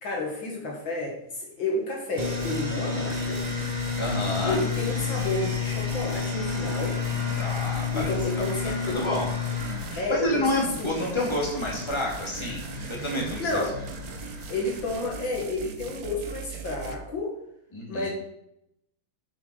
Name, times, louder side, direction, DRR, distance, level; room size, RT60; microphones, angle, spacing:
voice 1, 0.0-3.4 4.4-7.0 7.9-9.0 10.0-11.2 13.4-13.8 14.5-17.3 17.9-18.1, left 2 dB, 60° left, -1 dB, 2.6 m, -31 dB
sound 1, 2.2-15.1, left 5 dB, 20° right, 1.4 m, -31 dB
sound 2, 2.2-2.7 3.1-10.1 10.5-17.0, right 5 dB, 50° right, 1.3 m, -41 dB
voice 2, 4.0-4.6 7.3-8.1 8.8-9.3 9.9-13.6 17.7-18.1, left 1 dB, 10° left, -3 dB, 2.8 m, -29 dB
8.3 x 8.3 x 5.1 m, 0.78 s
omnidirectional pair, 2.3 m